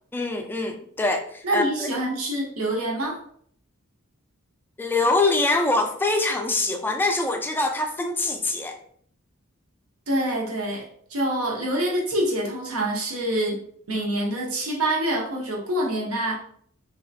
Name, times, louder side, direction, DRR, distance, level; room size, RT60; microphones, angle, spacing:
voice 1, 0.1-1.9 4.8-8.8, left 2 dB, 10° left, 0.3 m, -24 dB
voice 2, 1.4-3.2 10.1-13.6 13.9-16.3, right 1 dB, 75° right, 0.8 m, -26 dB
3.2 x 2.8 x 2.6 m
head